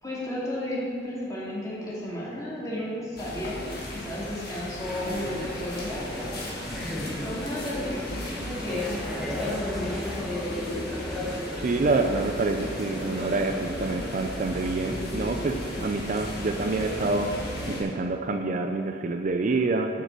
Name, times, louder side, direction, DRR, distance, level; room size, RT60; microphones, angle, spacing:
voice 1, 0.0-6.7 7.2-10.1, left 1 dB, 20° left, -7 dB, 2.4 m, -34 dB
sound 1, 3.2-17.8, left 1 dB, 60° left, 2.0 m, -37 dB
sound 2, 4.8-17.8, left 1 dB, ahead, 1.4 m, -35 dB
voice 2, 11.6-20.0, right 3 dB, 45° right, 5 dB, 0.5 m, -27 dB
7.7 x 6.6 x 6.5 m, 2.2 s
head